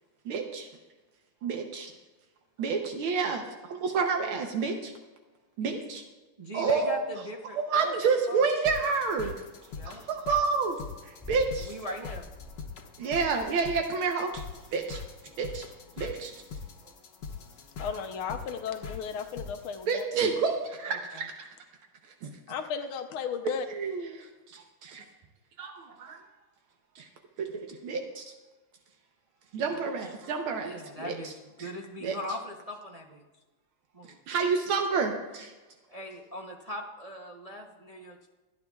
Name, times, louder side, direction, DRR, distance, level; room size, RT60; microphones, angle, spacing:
voice 1, 0.3-0.7 1.4-1.9 2.6-4.9 5.6-6.0 6.5-7.0 7.6-9.3 10.1-10.8 11.0-11.7 13.0-14.4 14.7-15.0 15.4-15.7 16.0-16.3 19.9-21.5 22.2-22.3 23.7-25.1 25.6-26.2 27.0-27.1 27.4-28.2 29.5-31.3 31.6-31.7 32.0-32.2 34.3-35.5, right 5 dB, 80° right, 3 dB, 1.8 m, -29 dB
voice 2, 6.4-7.9 8.3-8.4 9.7-10.0 11.6-12.3 20.9-21.3 25.0-25.1 29.7-30.1 30.6-33.2 33.9-34.2 35.9-38.3, equal, 40° right, -1 dB, 0.5 m, -40 dB
sound 1, 8.7-20.0, left 5 dB, 60° left, 1.5 m, -43 dB
sound 2, 11.2-11.6 12.1-12.7 13.2-13.8 14.3-14.8 15.4-15.8 16.5-16.8 17.8-17.9, left 1 dB, 10° left, 1.7 m, -47 dB
voice 3, 17.8-20.1 22.5-23.7, left 6 dB, 85° left, 5 dB, 1.7 m, -34 dB
26.0 x 9.6 x 2.4 m, 1.2 s
omnidirectional pair, 2.3 m